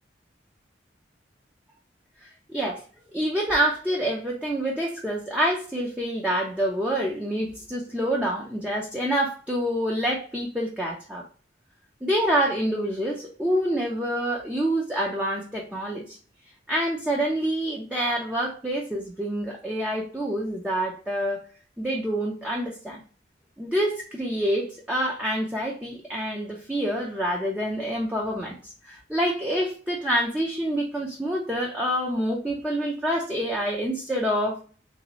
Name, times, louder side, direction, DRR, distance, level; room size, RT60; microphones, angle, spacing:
voice 1, 2.5-2.8 3.1-11.3 12.0-16.2 16.7-21.4 21.8-23.0 23.6-34.6, equal, 5° right, -2 dB, 0.5 m, -27 dB
3.2 x 2.6 x 2.9 m, 0.40 s
head